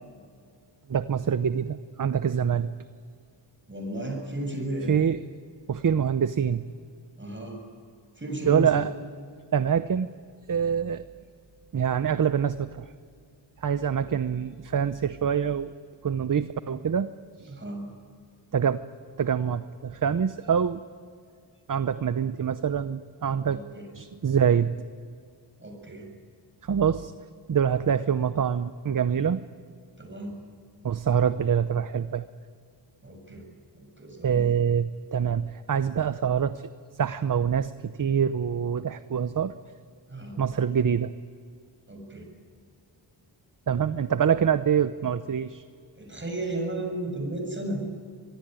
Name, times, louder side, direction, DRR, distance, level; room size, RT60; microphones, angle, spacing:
voice 1, 0.9-2.7 4.9-5.2 5.7-6.7 8.5-8.9 9.5-10.1 10.5-11.0 11.7-12.9 13.6-15.7 16.0-17.1 17.4-17.6 18.5-18.8 19.2-20.8 21.7-23.6 23.9-24.8 26.6-27.1 27.5-29.4 30.8-32.2 34.2-36.7 36.9-39.5 40.4-41.1 43.7-45.6, right 7 dB, 45° right, 12 dB, 0.8 m, -25 dB
voice 2, 3.7-5.0 7.2-7.6 8.2-8.8 17.5-17.8 23.5-23.8 25.6-26.1 30.0-30.3 33.0-33.5 33.7-34.4 40.1-40.4 41.9-42.3 45.9-47.8, right 1 dB, 25° right, 3 dB, 7.4 m, -34 dB
24.0 x 22.0 x 9.1 m, 2.2 s
wide cardioid pair, 100°, 45 cm